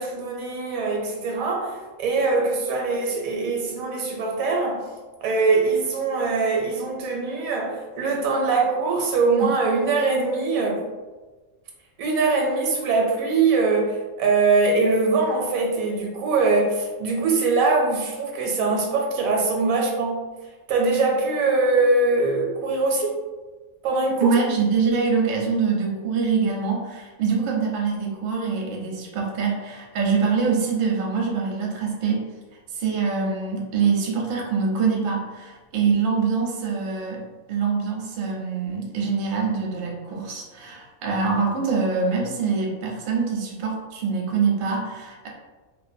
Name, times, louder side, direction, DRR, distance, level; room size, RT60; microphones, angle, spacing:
voice 1, 0.0-4.8 5.2-10.8 12.0-20.2 20.7-23.2 23.8-24.3, right 3 dB, 85° right, 0 dB, 1.0 m, -22 dB
voice 2, 24.2-32.2 32.7-37.2 37.5-45.3, right 5 dB, 60° right, -1 dB, 0.6 m, -24 dB
2.5 x 2.1 x 2.5 m, 1.3 s
omnidirectional pair, 1.4 m